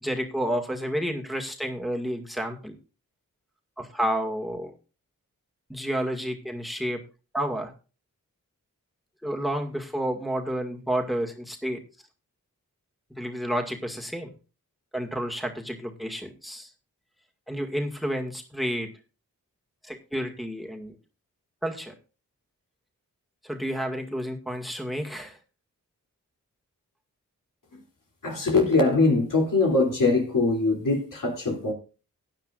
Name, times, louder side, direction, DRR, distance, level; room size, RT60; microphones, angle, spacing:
voice 1, 0.0-2.8 3.8-4.7 5.7-7.0 7.3-7.7 9.2-11.8 13.2-14.3 14.9-16.7 17.5-18.9 19.8-21.0 21.6-21.9 23.4-25.4, equal, ahead, 2.1 m, -30 dB
voice 2, 28.2-31.7, left 3 dB, 70° left, 3.2 m, -22 dB
16.0 x 9.8 x 2.5 m
cardioid pair, 50°, 33 cm